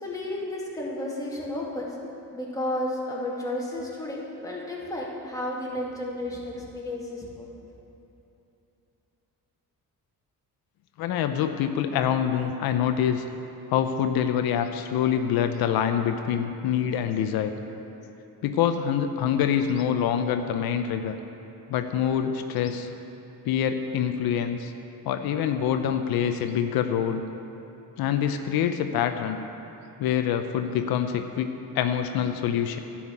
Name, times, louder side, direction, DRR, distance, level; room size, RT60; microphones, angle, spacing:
voice 1, 0.0-1.9 2.3-7.5, left 1 dB, 10° left, -5 dB, 2.3 m, -32 dB
voice 2, 11.0-13.3 13.7-17.5 18.4-21.2 21.7-22.9 23.4-24.7 25.1-27.2 28.0-29.4 30.0-32.8, left 9 dB, 85° left, 7 dB, 0.6 m, -25 dB
11.0 x 5.8 x 8.3 m, 2.9 s
cardioid pair, 100°, 36 cm